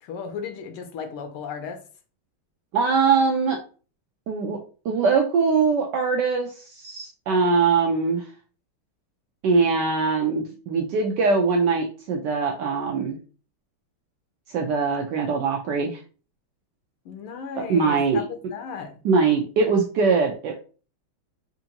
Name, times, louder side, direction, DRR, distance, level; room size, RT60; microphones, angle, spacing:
voice 1, 0.0-1.8 17.0-19.0, left 6 dB, 80° left, 1.5 m, -35 dB
voice 2, 2.7-3.6 4.3-8.3 9.4-13.2 14.5-16.0 17.6-18.2 19.0-20.6, right 4 dB, 85° right, 0.9 m, -22 dB
4.4 x 2.5 x 2.8 m
omnidirectional pair, 2.4 m